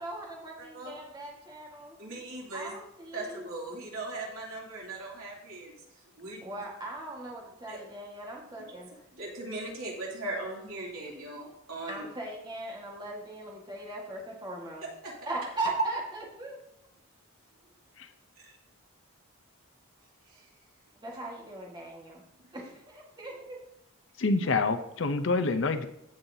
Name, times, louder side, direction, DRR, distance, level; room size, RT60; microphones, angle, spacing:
voice 1, 0.0-2.0 2.5-3.5 6.4-8.9 11.9-14.9 15.2-16.6 20.9-22.2 22.5-23.6, right 2 dB, 20° right, -2 dB, 1.5 m, -39 dB
voice 2, 0.6-1.0 2.0-2.7 3.1-5.8 6.2-6.4 7.7-7.8 8.6-8.8 9.1-12.1 15.0-15.1 15.8-15.9 18.4-18.5 20.3-20.5 24.4-24.6, right 2 dB, 85° right, -4 dB, 2.8 m, -38 dB
voice 3, 24.2-25.9, left 3 dB, 60° left, 10 dB, 0.6 m, -27 dB
15.0 x 5.6 x 2.7 m, 0.81 s
head